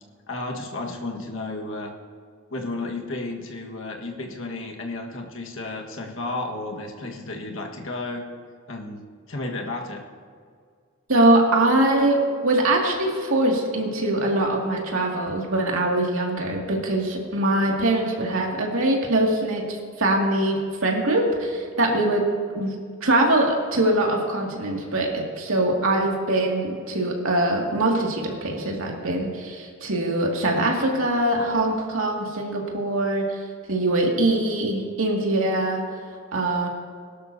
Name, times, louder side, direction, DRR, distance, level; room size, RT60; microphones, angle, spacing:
voice 1, 0.3-1.9 2.5-8.3 8.7-10.0, left 2 dB, 65° left, 1 dB, 1.5 m, -33 dB
voice 2, 11.1-22.2 22.5-33.4 33.7-35.8 36.3-36.7, right 1 dB, 80° right, -1 dB, 2.2 m, -23 dB
21.0 x 12.0 x 2.8 m, 2.1 s
head